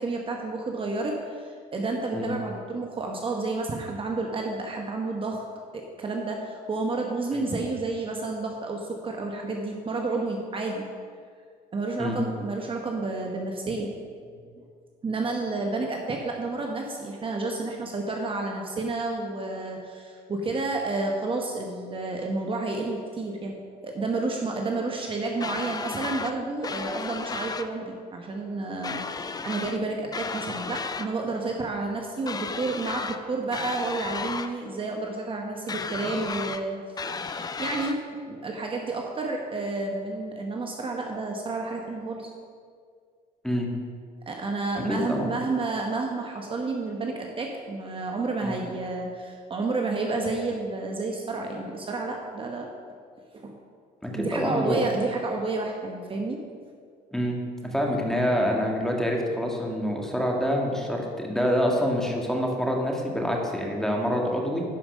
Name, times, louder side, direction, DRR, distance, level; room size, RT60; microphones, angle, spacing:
voice 1, 0.0-5.4 5.7-10.9 11.7-13.9 14.5-14.6 15.0-23.6 23.8-36.8 37.1-42.3 44.3-52.7 53.3-53.6 54.1-56.4, right 3 dB, 30° right, 1 dB, 1.1 m, -30 dB
sound 1, 25.4-26.3 26.6-27.7 28.8-29.8 30.1-31.1 32.3-33.2 33.5-34.5 35.7-36.6 37.0-38.0, left 4 dB, 25° left, 0.5 m, -34 dB
voice 2, 44.7-45.3 48.4-48.6 54.0-54.8 57.1-64.6, equal, 5° left, 0 dB, 1.8 m, -26 dB
10.5 x 5.7 x 6.5 m, 2.1 s
cardioid pair, 110°, 17 cm